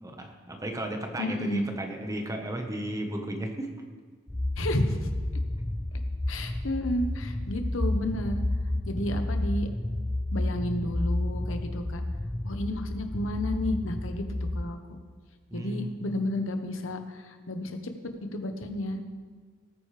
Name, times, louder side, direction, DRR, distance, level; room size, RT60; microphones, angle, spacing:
voice 1, 0.0-3.7 15.5-16.0, right 1 dB, 15° right, 3 dB, 1.2 m, -34 dB
voice 2, 1.2-1.6 4.6-5.1 6.3-8.4 8.9-9.7 10.3-12.0 12.4-14.2 14.5-14.8 15.5-17.9 18.3-19.0, left 1 dB, 85° left, 6 dB, 1.1 m, -31 dB
sound 1, 4.3-14.7, left 1 dB, 10° left, 0.3 m, -31 dB
19.0 x 9.1 x 3.3 m, 1.5 s
head